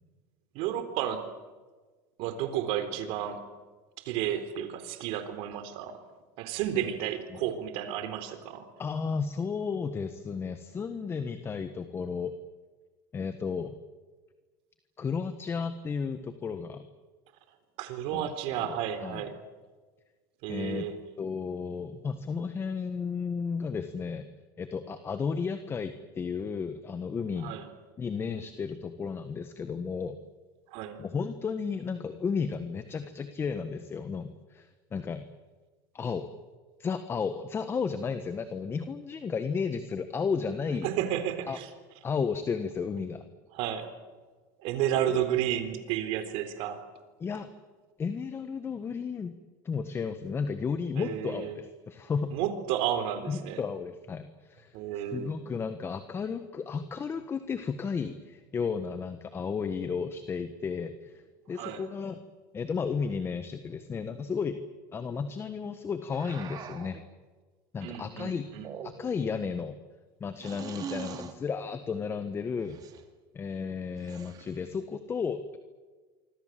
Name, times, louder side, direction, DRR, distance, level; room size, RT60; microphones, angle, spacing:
voice 1, 0.5-1.2 2.2-3.4 4.0-5.9 6.4-8.7 17.8-19.4 20.4-21.0 27.4-27.6 30.7-31.0 40.8-41.7 43.5-43.9 44.6-46.8 51.0-51.5 52.3-53.6 54.7-55.3 61.6-61.8 67.8-68.7, right 10 dB, 60° right, 9 dB, 4.0 m, -32 dB
voice 2, 8.8-12.3 13.1-13.7 15.0-16.8 18.1-18.3 18.6-19.3 20.5-20.9 21.2-24.3 24.6-27.6 28.0-30.2 31.0-35.3 35.9-36.3 36.8-40.9 41.5-41.6 42.0-43.2 45.1-45.2 47.2-47.5 48.0-49.4 49.7-52.3 53.3-61.2 61.5-62.2 62.5-64.6 64.9-67.0 67.7-68.5 68.8-69.8 70.2-72.8 73.3-75.6, left 5 dB, 25° left, 10 dB, 1.6 m, -33 dB
sound 1, 66.1-67.0 68.5-69.3 70.4-71.4 72.6-73.0 74.0-74.7, right 8 dB, 40° right, 2.9 m, -42 dB
26.0 x 25.0 x 7.7 m, 1.3 s
supercardioid pair, 130°, 11 cm